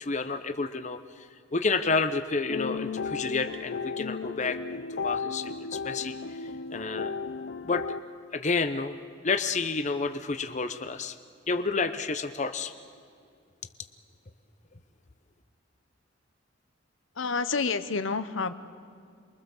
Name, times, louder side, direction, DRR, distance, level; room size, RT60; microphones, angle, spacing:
voice 1, 0.0-6.4 6.7-7.1 7.6-7.8 8.3-8.9 9.2-11.1 11.5-12.7, left 4 dB, 35° left, 9 dB, 0.8 m, -30 dB
sound 1, 2.5-8.0, left 5 dB, 60° left, 0.5 m, -34 dB
voice 2, 17.1-18.5, left 4 dB, 75° left, 11 dB, 1.0 m, -29 dB
28.0 x 23.0 x 7.2 m, 2.4 s
head